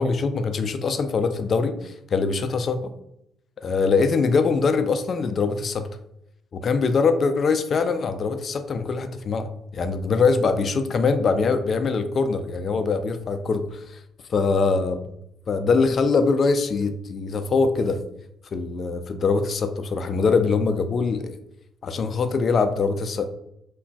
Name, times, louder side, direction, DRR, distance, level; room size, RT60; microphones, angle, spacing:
voice 1, 0.0-2.8 3.6-5.9 6.5-14.0 14.3-15.0 15.5-18.0 18.5-21.4 21.8-23.2, left 4 dB, 50° left, 9 dB, 0.3 m, -23 dB
3.7 x 2.2 x 2.2 m, 0.77 s
supercardioid pair, 60°, 0 cm